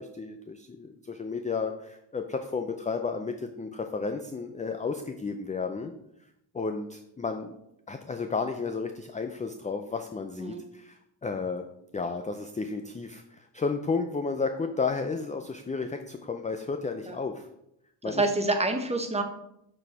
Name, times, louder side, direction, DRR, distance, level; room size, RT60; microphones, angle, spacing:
voice 1, 0.0-5.9 6.5-7.6 7.9-11.0 11.2-11.7 11.9-17.4 18.0-18.2, left 4 dB, 15° left, 6 dB, 0.4 m, -32 dB
voice 2, 18.0-19.2, right 2 dB, 15° right, 4 dB, 1.1 m, -27 dB
6.7 x 4.1 x 4.3 m, 0.79 s
cardioid pair, 75°, 44 cm